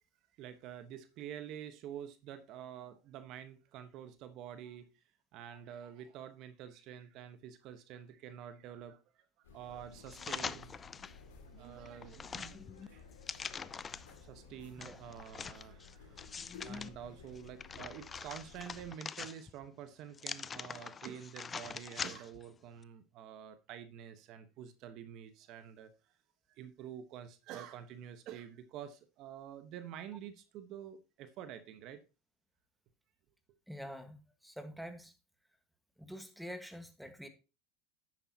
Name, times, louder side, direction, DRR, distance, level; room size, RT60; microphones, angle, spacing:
voice 1, 0.4-4.9 5.3-9.0 9.5-10.8 11.5-13.0 14.2-25.9 26.5-32.0, right 9 dB, 55° right, 1.2 m, -48 dB
sound 1, 9.4-18.9, left 5 dB, 90° left, 2.4 m, -56 dB
sound 2, 10.1-11.2 11.6-14.2 14.8-16.9 17.4-19.7 20.1-22.5 22.8-22.9, left 6 dB, 25° left, 0.5 m, -44 dB
voice 2, 33.7-35.1 36.0-37.3, equal, ahead, 1.6 m, -46 dB
10.5 x 8.8 x 2.9 m
hypercardioid pair, 90°, 0 cm